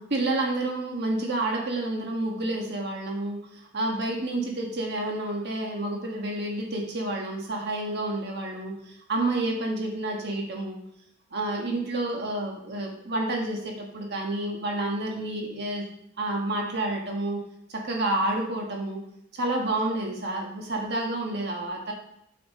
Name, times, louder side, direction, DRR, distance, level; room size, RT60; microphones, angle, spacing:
voice 1, 0.0-10.8 11.3-15.8 16.2-17.4 17.7-19.0 19.3-21.9, right 2 dB, 55° right, 1 dB, 1.4 m, -29 dB
8.3 x 5.8 x 4.2 m, 0.75 s
head